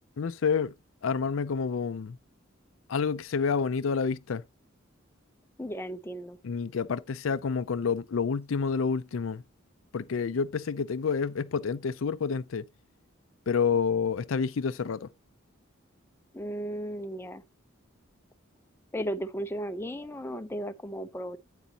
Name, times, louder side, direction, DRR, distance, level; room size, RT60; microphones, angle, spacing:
voice 1, 0.2-0.7 1.0-2.2 2.9-4.4 6.4-9.4 9.9-12.7 13.5-15.1, left 5 dB, 70° left, 0.5 m, -28 dB
voice 2, 5.6-6.4 16.3-17.4 18.9-21.4, equal, 10° left, 0.6 m, -35 dB
9.1 x 8.2 x 2.8 m
head